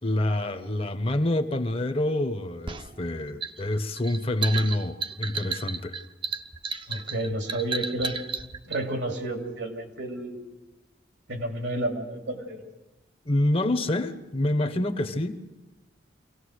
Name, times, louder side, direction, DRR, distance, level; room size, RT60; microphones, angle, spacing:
voice 1, 0.0-6.0 13.2-15.5, left 1 dB, 30° left, 10 dB, 0.9 m, -27 dB
sound 1, 2.7-8.8, right 5 dB, 25° right, 0.7 m, -33 dB
voice 2, 6.9-8.2 8.7-10.4 11.3-12.6, right 1 dB, 85° right, 3 dB, 2.8 m, -31 dB
25.0 x 17.5 x 6.5 m, 1.1 s
head